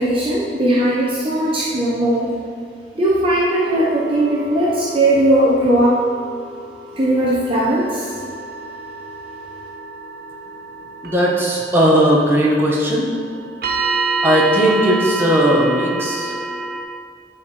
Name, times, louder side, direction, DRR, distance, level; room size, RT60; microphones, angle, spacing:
voice 1, 0.0-2.3 2.9-6.0 7.0-8.2, right 1 dB, 30° right, -6 dB, 1.1 m, -18 dB
sound 1, 3.5-16.8, right 3 dB, 55° right, 1.3 m, -29 dB
voice 2, 11.0-13.1 14.2-16.3, equal, 15° right, -4 dB, 1.4 m, -17 dB
11.0 x 5.1 x 4.5 m, 2.1 s
head